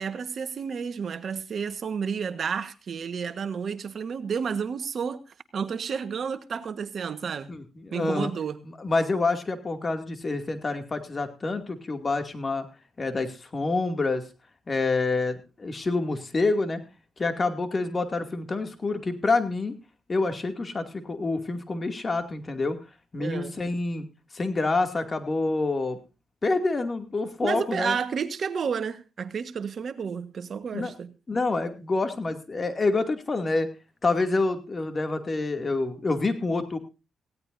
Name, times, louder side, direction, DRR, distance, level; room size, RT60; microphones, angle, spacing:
voice 1, 0.0-5.2 5.5-7.5 7.9-8.6 23.2-23.5 27.4-31.1, right 6 dB, 60° right, 1.3 m, -31 dB
voice 2, 7.5-8.3 8.8-12.7 13.0-14.2 14.7-16.8 17.2-19.7 20.1-22.8 23.1-24.0 24.3-26.0 26.4-28.0 30.7-30.9 31.3-33.7 34.0-36.8, left 3 dB, 35° left, 2.4 m, -27 dB
18.5 x 16.5 x 2.7 m
cardioid pair, 70°, 0 cm